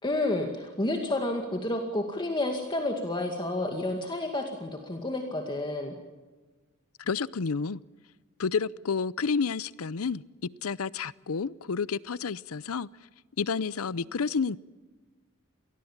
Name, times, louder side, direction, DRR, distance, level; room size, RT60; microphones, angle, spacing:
voice 1, 0.0-5.9, left 1 dB, 20° left, 3 dB, 2.2 m, -30 dB
voice 2, 7.0-7.8 8.4-10.2 10.6-12.9 13.4-14.6, left 5 dB, 85° left, 20 dB, 0.6 m, -30 dB
27.5 x 19.5 x 7.3 m, 1.3 s
head